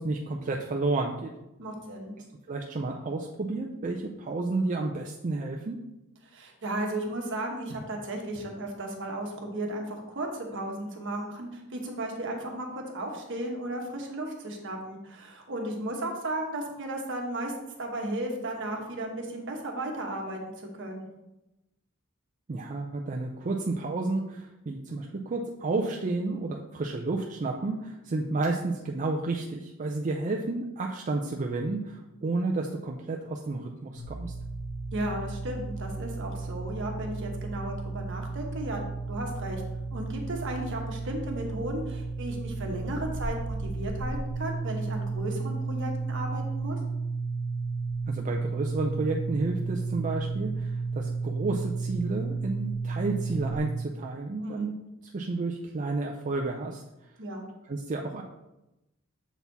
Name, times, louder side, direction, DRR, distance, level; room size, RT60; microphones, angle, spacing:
voice 1, 0.0-1.3 2.5-5.8 22.5-34.3 48.1-54.7 55.0-56.8 57.7-58.2, right 3 dB, 35° right, 1 dB, 0.5 m, -31 dB
voice 2, 1.6-2.2 6.3-17.5 17.8-21.1 34.9-39.6 39.9-46.8 54.4-54.7 57.2-57.5, right 1 dB, 60° right, 2 dB, 1.2 m, -35 dB
sound 1, 34.0-53.6, right 3 dB, 50° left, 1.7 m, -33 dB
7.1 x 4.1 x 4.1 m, 0.96 s
head